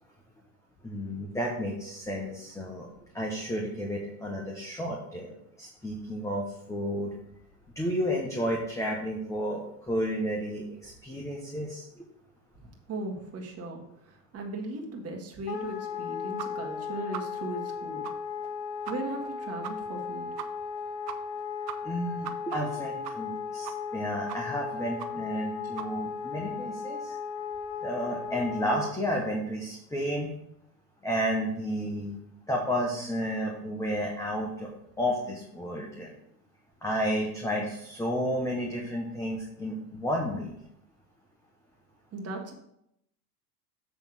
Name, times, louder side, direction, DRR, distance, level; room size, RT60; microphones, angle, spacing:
voice 1, 0.8-2.9 3.1-5.3 5.6-7.1 7.7-12.1 21.8-27.2 27.8-30.3 31.0-32.1 32.5-36.1 36.8-40.5, equal, 5° left, -1 dB, 1.1 m, -32 dB
voice 2, 12.6-13.8 14.3-18.0 18.9-20.3 42.1-42.5, right 2 dB, 30° right, 1 dB, 1.8 m, -37 dB
Wind instrument woodwind instrument, 15.5-28.9, left 5 dB, 60° left, 1.5 m, -36 dB
sound 1, 16.4-16.5 16.7-16.8 17.1-17.2 17.6-17.7 18.0-18.1 18.4-18.5 18.8-18.9 19.2-19.3 19.6-19.7 20.0-20.1 20.4-20.5 20.8-20.9 21.1-21.4 21.7-23.4 23.6-24.0 24.3-24.6 25.0-25.1 25.4-25.5 25.8-25.9, right 11 dB, 75° right, 0.9 m, -39 dB
8.0 x 3.5 x 6.3 m, 0.78 s
hypercardioid pair, 100°, 48 cm